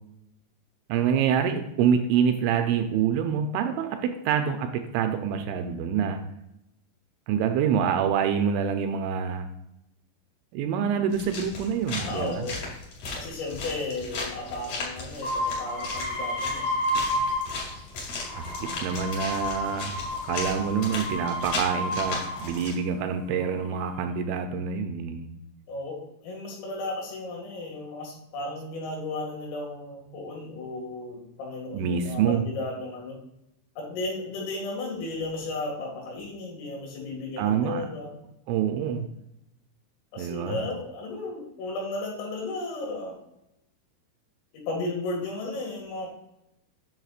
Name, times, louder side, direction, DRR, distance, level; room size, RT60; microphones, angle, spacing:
voice 1, 0.9-6.2 7.3-9.5 10.5-12.5 18.3-19.9 20.2-25.3 31.7-32.5 37.4-37.9 38.5-39.1 40.2-40.6, right 7 dB, 80° right, 6 dB, 2.8 m, -26 dB
sound 1, 11.1-22.7, left 3 dB, 45° left, 3.0 m, -37 dB
voice 2, 12.0-12.6 13.2-16.7 25.7-33.2 33.8-38.1 40.1-43.2 44.5-46.1, left 2 dB, 85° left, -1 dB, 4.6 m, -34 dB
sound 2, 15.2-17.8 18.1-22.7 23.4-24.0, left 1 dB, 70° left, 3.7 m, -31 dB
9.2 x 6.5 x 2.4 m, 0.84 s
omnidirectional pair, 5.7 m